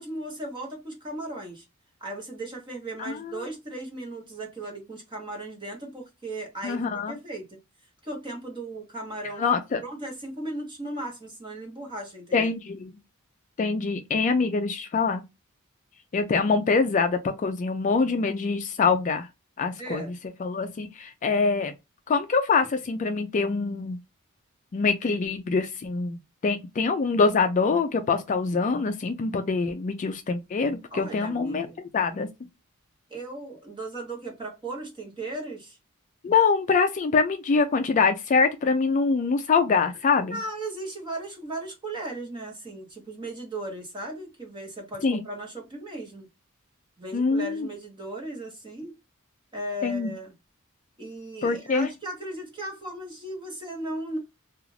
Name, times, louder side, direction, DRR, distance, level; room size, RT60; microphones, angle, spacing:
voice 1, 0.0-1.6 2.0-6.8 7.1-7.5 8.0-9.4 9.8-12.5 19.8-20.1 30.9-31.8 33.1-35.8 40.2-46.3 47.0-49.0 49.5-50.3 51.0-54.2, right 1 dB, 20° right, 1.0 m, -36 dB
voice 2, 3.0-3.5 6.6-7.1 9.4-9.8 12.3-12.9 13.6-15.2 16.1-19.3 19.6-20.1 20.4-21.7 22.1-24.0 24.7-32.3 36.2-40.4 45.0-45.2 47.1-47.7 49.8-50.1 51.4-51.9, left 4 dB, 35° left, 0.3 m, -24 dB
2.4 x 2.4 x 3.1 m
head